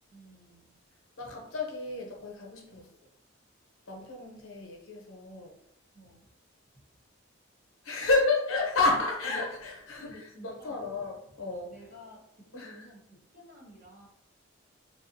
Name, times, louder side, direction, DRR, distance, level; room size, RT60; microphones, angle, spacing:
voice 1, 0.1-0.8 1.2-1.3 2.7-2.9 5.3-5.5 5.9-6.4 6.7-6.8 8.0-8.1 9.9-11.0 11.7-14.1, left 1 dB, 45° right, -4 dB, 1.1 m, -52 dB
voice 2, 1.2-2.9 3.9-5.5 7.8-11.7 12.5-12.8, left 3 dB, 75° left, 0 dB, 0.8 m, -31 dB
3.2 x 2.5 x 2.6 m, 0.77 s
head